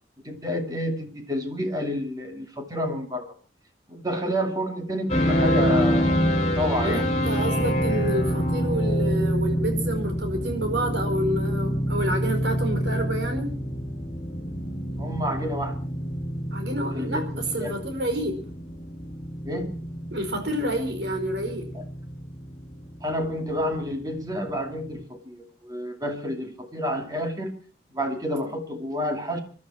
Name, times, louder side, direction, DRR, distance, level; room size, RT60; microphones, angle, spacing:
voice 1, 0.2-3.3 3.9-6.3 6.6-7.1 15.0-15.8 16.9-17.8 19.4-19.8 21.7-21.8 23.0-27.5 27.9-29.4, equal, 20° right, 4 dB, 2.4 m, -29 dB
sound 1, 5.1-25.0, equal, 35° left, 2.6 m, -27 dB
voice 2, 6.8-13.5 16.5-18.4 20.1-21.7, right 1 dB, 70° right, 5 dB, 4.8 m, -29 dB
25.5 x 12.0 x 4.3 m, 0.37 s
head